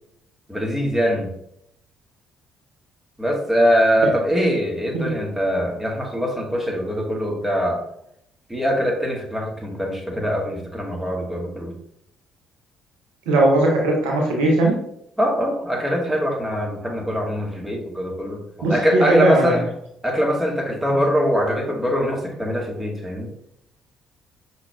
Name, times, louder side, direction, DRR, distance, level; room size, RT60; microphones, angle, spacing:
voice 1, 0.5-1.3 3.2-7.8 8.5-11.7 15.2-18.4 18.7-19.6 20.0-23.3, equal, 10° right, 0 dB, 1.3 m, -22 dB
voice 2, 13.3-14.7 18.6-19.5, right 2 dB, 70° right, -1 dB, 0.8 m, -18 dB
5.8 x 3.0 x 2.3 m, 0.74 s
figure-of-eight pair, 45°, 2 cm